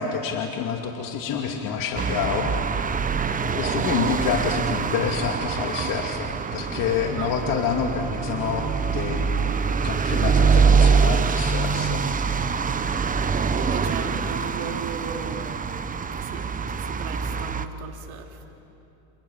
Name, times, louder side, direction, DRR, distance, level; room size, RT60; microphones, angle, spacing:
voice 1, 0.0-2.5 3.5-12.0, left 6 dB, 50° left, 3 dB, 2.6 m, -28 dB
sound 1, 1.9-17.7, right 5 dB, 20° right, 1.1 m, -24 dB
voice 2, 3.3-3.7 7.2-7.4 13.5-15.8 16.1-18.5, right 7 dB, 85° right, 3 dB, 3.5 m, -37 dB
29.0 x 28.0 x 7.3 m, 2.8 s
supercardioid pair, 110°, 42 cm